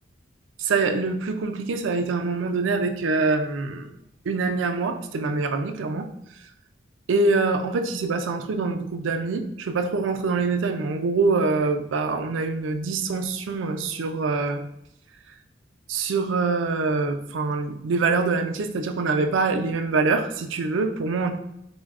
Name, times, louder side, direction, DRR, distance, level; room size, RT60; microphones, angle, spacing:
voice 1, 0.6-3.9 4.3-6.1 7.1-14.6 15.9-21.3, right 3 dB, 75° right, 7 dB, 0.4 m, -24 dB
3.9 x 2.2 x 3.5 m, 0.80 s
head